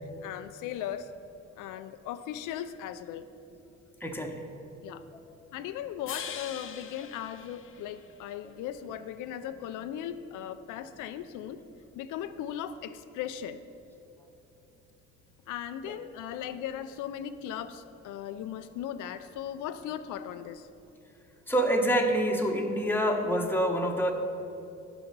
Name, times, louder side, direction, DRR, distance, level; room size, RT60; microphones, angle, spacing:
voice 1, 0.2-1.1 1.6-3.3 4.8-5.0 5.5-11.6 11.9-13.6 15.5-20.7, left 10 dB, 85° left, 11 dB, 0.5 m, -38 dB
voice 2, 4.0-4.5 4.9-5.0 21.5-24.1, equal, 5° left, 2 dB, 1.0 m, -26 dB
sound 1, 6.1-8.4, left 8 dB, 45° left, 0.7 m, -42 dB
10.5 x 6.0 x 5.4 m, 2.8 s
cardioid pair, 90°, 30 cm